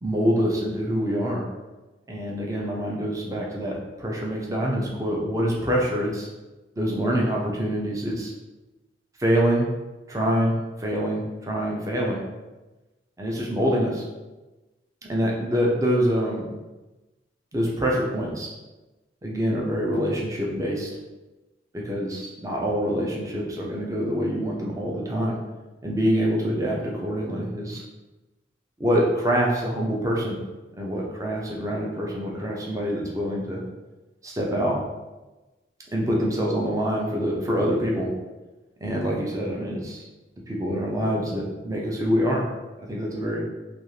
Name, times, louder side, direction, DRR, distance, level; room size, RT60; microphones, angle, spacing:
voice 1, 0.0-1.4 2.1-6.3 6.8-8.3 9.2-9.7 10.1-10.5 10.8-12.2 13.2-14.0 15.1-16.5 17.5-18.5 19.2-20.9 21.7-25.4 25.8-27.8 28.8-30.4 30.7-33.6 34.2-34.8 35.9-38.1 38.8-40.1 40.5-42.4 42.9-43.4, equal, 20° right, -2 dB, 0.5 m, -25 dB
2.5 x 2.4 x 3.0 m, 1.1 s
head